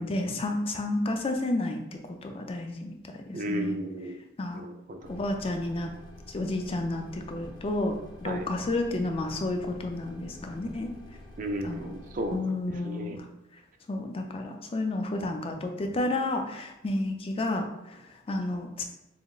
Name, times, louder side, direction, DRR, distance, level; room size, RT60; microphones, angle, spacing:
voice 1, 0.0-1.8 2.1-3.0 3.3-3.8 4.4-4.6 5.1-5.9 6.3-7.9 8.2-10.9 11.6-11.9 12.3-13.2 13.9-18.8, left 2 dB, 30° left, 4 dB, 0.4 m, -31 dB
voice 2, 3.3-4.2 4.5-5.1 8.2-8.5 11.4-12.5 12.8-13.2, right 1 dB, 45° right, 4 dB, 0.4 m, -34 dB
sound 1, 5.0-12.4, left 1 dB, 75° left, 0.8 m, -48 dB
5.6 x 2.0 x 2.3 m, 0.89 s
head